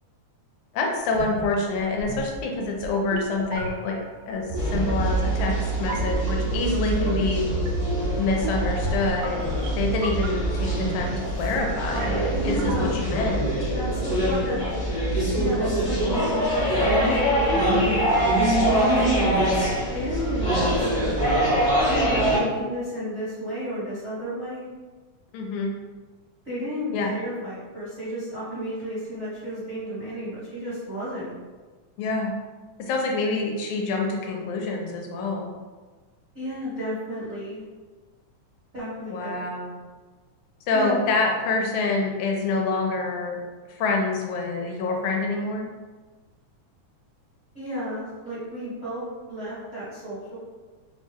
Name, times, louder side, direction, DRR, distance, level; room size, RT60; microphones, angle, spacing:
voice 1, 0.7-4.0 4.3-7.4 8.2-9.5 9.8-13.5 25.3-25.7 26.9-27.1 32.0-32.3 32.8-35.5 39.1-39.7 40.7-43.4 43.7-45.7, left 3 dB, 80° left, 0 dB, 2.0 m, -26 dB
sound 1, 1.1-13.2, right 3 dB, 85° right, 2.0 m, -35 dB
sound 2, 4.6-22.4, right 1 dB, 35° left, 0.7 m, -24 dB
voice 2, 12.3-13.0 13.7-14.6 15.2-19.5 19.9-21.3 21.9-24.7 26.4-31.4 36.3-37.6 38.7-39.4 40.7-41.0 47.5-50.4, equal, 40° right, -12 dB, 1.0 m, -33 dB
sound 3, 13.5-14.7 16.2-16.3 16.9-18.3, left 1 dB, 60° right, 1.4 m, -32 dB
5.2 x 2.1 x 3.3 m, 1.4 s
omnidirectional pair, 3.5 m